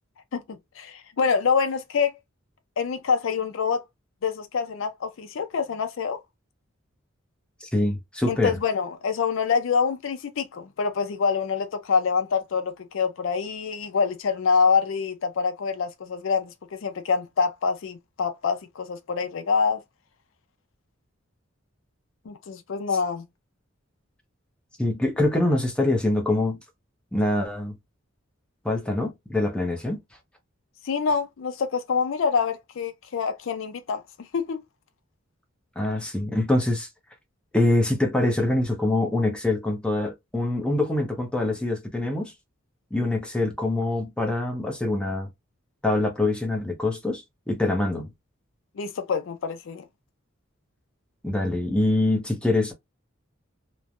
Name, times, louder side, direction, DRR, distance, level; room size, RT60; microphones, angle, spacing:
voice 1, 0.3-2.1 2.8-3.8 4.2-6.2 8.3-19.8 22.3-23.3 30.8-34.6 48.8-49.8, left 5 dB, 70° left, 0.4 m, -26 dB
voice 2, 7.6-8.5 24.8-26.6 27.1-27.7 28.6-30.0 35.8-36.9 37.5-42.3 42.9-45.3 45.8-48.1 51.2-52.7, left 2 dB, 5° left, 0.6 m, -24 dB
3.1 x 2.1 x 2.4 m
head